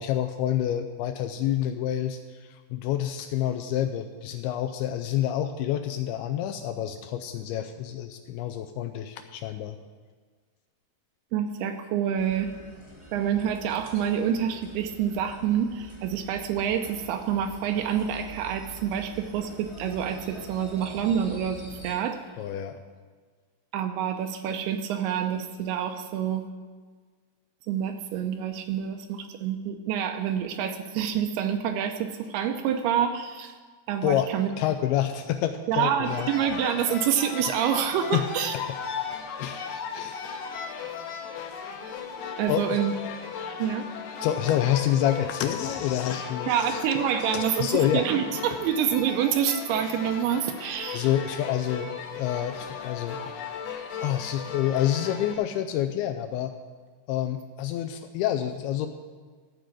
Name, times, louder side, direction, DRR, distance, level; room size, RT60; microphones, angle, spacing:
voice 1, 0.0-9.8 22.4-22.8 34.0-34.3 34.6-36.3 38.1-38.2 39.4-40.3 42.5-42.8 44.2-46.8 47.3-48.0 50.9-53.4 54.0-56.5 57.1-58.9, left 11 dB, 80° left, 7 dB, 2.3 m, -28 dB
voice 2, 11.3-12.5 13.1-22.2 23.7-26.4 27.7-33.6 33.9-34.5 35.7-38.6 42.4-42.9 43.6-43.8 46.5-51.1, right 9 dB, 80° right, 7 dB, 2.5 m, -27 dB
sound 1, 12.2-21.9, right 1 dB, 40° right, 0.4 m, -45 dB
sound 2, 36.0-55.3, left 6 dB, 65° left, 2.0 m, -36 dB
14.0 x 4.8 x 8.7 m, 1.5 s
omnidirectional pair, 4.9 m